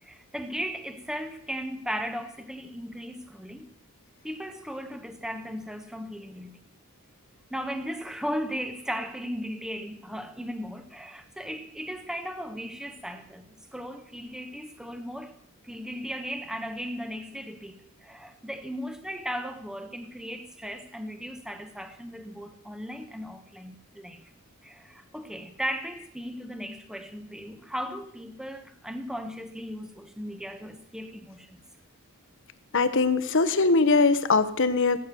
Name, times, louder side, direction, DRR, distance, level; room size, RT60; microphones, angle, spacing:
voice 1, 0.0-3.6 4.2-6.6 7.5-15.4 15.6-24.3 24.6-31.6, equal, 5° right, 1.1 m, -36 dB
voice 2, 32.7-35.0, left 3 dB, 60° left, 1.2 m, -21 dB
19.0 x 8.7 x 6.9 m
head